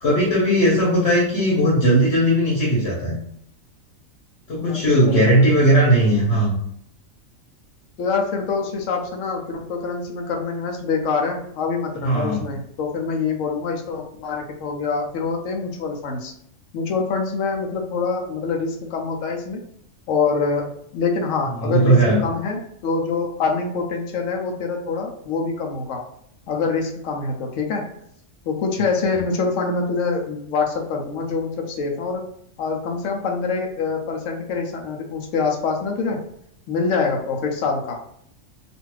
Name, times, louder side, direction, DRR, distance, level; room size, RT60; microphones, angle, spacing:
voice 1, 0.0-3.1 4.5-6.6 12.0-12.4 21.5-22.2, right 1 dB, 50° left, -5 dB, 1.2 m, -18 dB
voice 2, 5.0-5.8 8.0-16.3 16.7-19.6 20.1-26.0 26.5-27.9 28.4-32.3 32.6-36.3 36.7-38.0, left 4 dB, 70° left, 2 dB, 0.9 m, -25 dB
2.5 x 2.5 x 3.1 m, 0.71 s
omnidirectional pair, 1.5 m